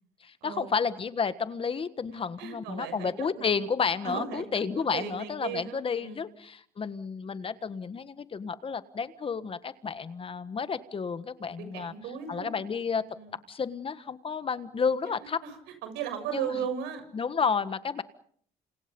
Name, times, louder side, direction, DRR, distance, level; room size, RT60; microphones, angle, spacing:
voice 1, 0.2-11.9 12.3-13.0 13.5-15.4 16.3-16.5 17.1-18.0, left 5 dB, 30° left, 13 dB, 1.5 m, -31 dB
voice 2, 2.4-3.6 4.0-6.2 11.4-12.6 13.1-13.3 15.0-15.5 15.8-17.1, right 7 dB, 90° right, 8 dB, 6.8 m, -37 dB
30.0 x 26.5 x 5.4 m, 0.62 s
cardioid pair, 110°, 17 cm